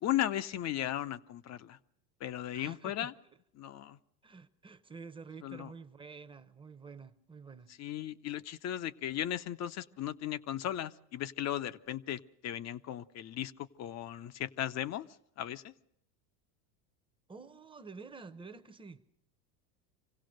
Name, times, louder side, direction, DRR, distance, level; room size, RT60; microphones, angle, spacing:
voice 1, 0.0-1.8 2.2-3.1 3.6-4.0 5.4-5.7 7.8-15.1 15.4-15.7, left 12 dB, 35° left, 0.7 m, -36 dB
voice 2, 2.5-3.1 4.2-7.7 17.3-19.0, right 4 dB, 10° right, 0.9 m, -49 dB
25.5 x 16.5 x 6.5 m
supercardioid pair, 105°, 50 cm